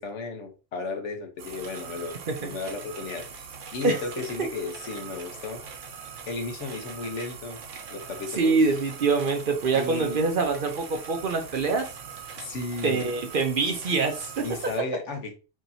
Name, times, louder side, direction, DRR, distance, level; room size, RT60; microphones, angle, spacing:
voice 1, 0.0-5.6 6.2-7.6 7.9-8.6 9.7-10.3 12.4-13.0 14.4-15.3, left 3 dB, 75° left, 5 dB, 1.2 m, -34 dB
sound 1, 1.4-14.8, right 6 dB, 80° right, 1.2 m, -42 dB
voice 2, 8.4-11.9 12.8-14.4, right 4 dB, 55° right, 4 dB, 0.8 m, -25 dB
4.8 x 2.9 x 2.7 m, 0.33 s
omnidirectional pair, 1.3 m